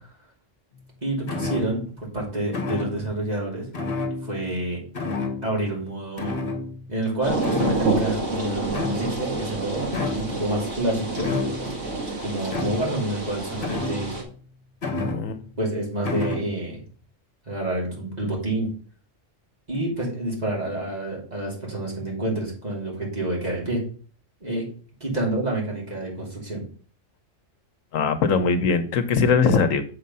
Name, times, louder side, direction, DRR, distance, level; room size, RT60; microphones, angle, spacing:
voice 1, 1.0-3.6 4.2-4.8 5.4-6.4 6.9-9.9 10.1-11.3 12.2-14.1 15.6-16.8 17.5-18.7 19.7-23.8 24.4-24.7 25.0-26.6, right 1 dB, 30° right, -3 dB, 3.0 m, -28 dB
sound 1, 1.3-2.0 2.5-3.2 3.7-4.6 4.9-5.6 6.2-7.1 7.4-8.2 8.7-9.3 9.9-10.4 11.2-11.8 12.5-13.0 13.6-14.3 14.8-15.5 16.0-16.5, left 3 dB, 45° left, 1.5 m, -30 dB
sound 2, 7.2-14.2, right 2 dB, 70° right, 2.3 m, -28 dB
voice 2, 15.0-15.4 27.9-29.8, left 5 dB, 85° left, 10 dB, 1.2 m, -21 dB
7.5 x 5.1 x 5.5 m, 0.41 s
omnidirectional pair, 1.3 m